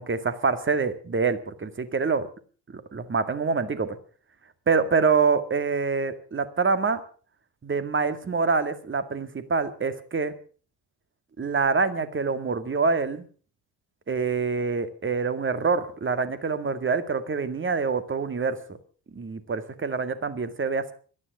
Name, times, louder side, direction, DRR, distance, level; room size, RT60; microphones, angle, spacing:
voice 1, 0.0-2.3 2.7-4.0 4.7-7.0 7.6-10.3 11.4-13.2 14.1-18.6 19.1-20.9, right 4 dB, 25° right, 11 dB, 2.0 m, -26 dB
18.0 x 13.0 x 6.1 m, 0.42 s
figure-of-eight pair, 50°, 49 cm